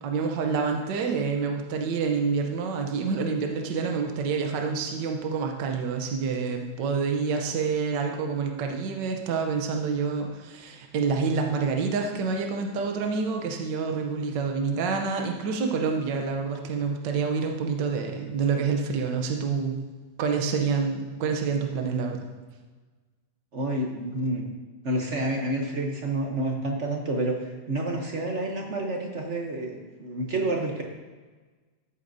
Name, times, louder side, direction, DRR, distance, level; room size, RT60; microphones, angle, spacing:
voice 1, 0.0-19.7 20.2-22.3, right 5 dB, 70° right, 3 dB, 1.5 m, -27 dB
voice 2, 23.5-24.5 24.8-30.8, right 1 dB, 50° right, 1 dB, 1.0 m, -29 dB
14.0 x 8.3 x 2.7 m, 1.4 s
omnidirectional pair, 2.1 m